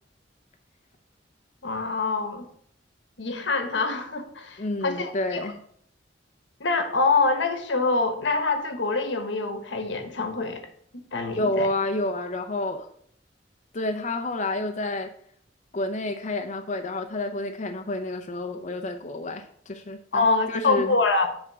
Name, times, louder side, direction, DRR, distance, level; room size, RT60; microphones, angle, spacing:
voice 1, 1.6-2.5 3.2-5.4 6.6-10.6 10.9-11.7 20.1-21.3, left 3 dB, 90° left, 1.1 m, -25 dB
voice 2, 4.6-5.6 11.3-12.9 13.7-15.1 15.7-21.0, left 2 dB, 45° left, 0.6 m, -29 dB
8.8 x 3.5 x 6.1 m
head